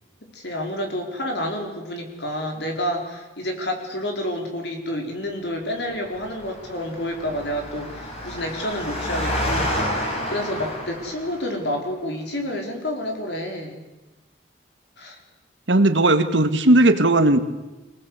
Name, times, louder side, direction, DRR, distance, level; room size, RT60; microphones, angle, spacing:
voice 1, 0.3-10.0 10.3-13.8 15.0-15.2, equal, 65° left, 2 dB, 4.9 m, -29 dB
Engine, 5.9-11.5, equal, 35° left, 5.5 m, -29 dB
voice 2, 15.7-17.4, right 2 dB, 90° right, 9 dB, 1.8 m, -16 dB
26.5 x 18.5 x 8.3 m, 1.1 s
head